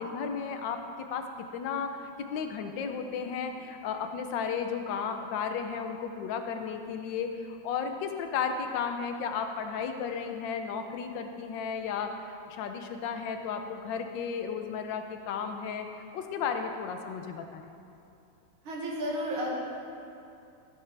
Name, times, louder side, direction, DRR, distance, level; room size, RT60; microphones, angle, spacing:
voice 1, 0.0-15.9 16.1-17.6, left 6 dB, 70° left, 6 dB, 1.4 m, -34 dB
voice 2, 18.6-19.5, equal, 90° right, -3 dB, 2.6 m, -32 dB
14.5 x 8.8 x 3.4 m, 2.7 s
omnidirectional pair, 2.2 m